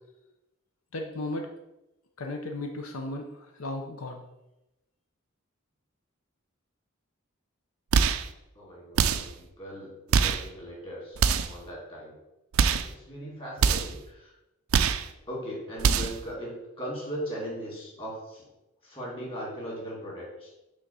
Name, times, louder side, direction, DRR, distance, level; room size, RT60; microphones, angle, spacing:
voice 1, 0.9-1.5 2.2-4.2, left 2 dB, 85° left, 3 dB, 0.8 m, -35 dB
sound 1, 7.9-8.3 9.0-9.4 10.1-10.5 11.2-11.6 12.5-12.9 13.6-14.0 14.7-15.1 15.8-16.2, right 6 dB, 80° right, 0.4 m, -24 dB
voice 2, 8.5-11.2 11.5-12.1 12.8-14.3 15.3-18.5 18.8-20.5, equal, 25° left, -4 dB, 2.6 m, -38 dB
6.3 x 3.6 x 5.5 m, 0.93 s
head